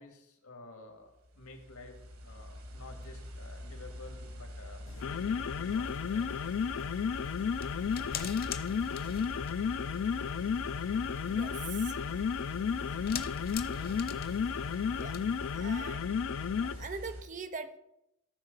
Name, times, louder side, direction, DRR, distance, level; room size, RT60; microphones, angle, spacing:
voice 1, 0.0-6.3, left 2 dB, 85° left, 4 dB, 2.1 m, -51 dB
sound 1, 1.1-17.2, left 1 dB, 70° right, 1.7 m, -44 dB
sound 2, 4.9-16.9, left 6 dB, 60° left, 0.4 m, -33 dB
sound 3, 5.7-15.5, left 6 dB, 45° left, 0.8 m, -46 dB
voice 2, 11.3-12.1 14.9-15.2 15.5-16.2 16.6-17.8, right 5 dB, 35° right, 11 dB, 0.7 m, -42 dB
13.5 x 4.7 x 6.6 m, 0.83 s
head